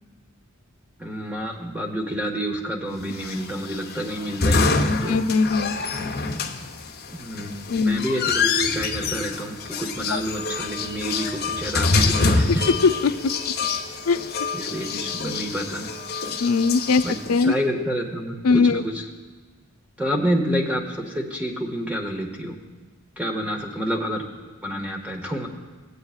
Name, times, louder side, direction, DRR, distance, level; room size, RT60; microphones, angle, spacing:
voice 1, 1.0-5.2 7.1-7.6 7.8-12.6 14.5-15.9 17.0-17.2 17.4-19.0 20.0-22.6 23.2-25.5, equal, 5° right, 1 dB, 0.8 m, -28 dB
sound 1, 3.1-17.4, left 4 dB, 45° left, 0.8 m, -26 dB
voice 2, 5.1-5.7 7.7-8.0 10.1-10.2 13.0-13.1 14.1-14.2 16.4-17.0 17.3-17.5 18.4-18.8, left 4 dB, 85° left, 11 dB, 0.5 m, -20 dB
17.5 x 8.2 x 2.4 m, 1.4 s
head